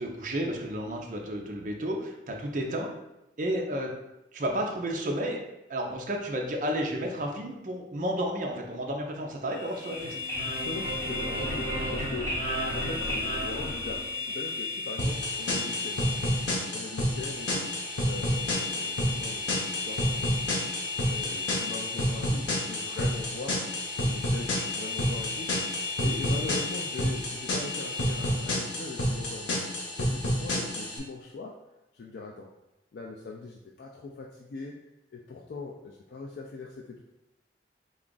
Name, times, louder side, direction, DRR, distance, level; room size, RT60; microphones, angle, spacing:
voice 1, 0.0-2.9 3.4-3.9 4.3-5.4 5.7-10.2, equal, 45° right, 0 dB, 0.5 m, -32 dB
sound 1, 9.5-28.7, left 4 dB, 5° right, 0.9 m, -36 dB
sound 2, 9.7-14.5, equal, 15° left, 1.4 m, -33 dB
voice 2, 10.4-16.3 16.7-17.7 18.0-23.6 24.0-25.5 26.0-31.6 31.9-32.5 32.9-34.7 35.1-37.0, left 3 dB, 60° left, -1 dB, 0.3 m, -41 dB
sound 3, 15.0-31.0, left 1 dB, 80° left, 0.8 m, -30 dB
3.5 x 2.3 x 3.8 m, 0.91 s
head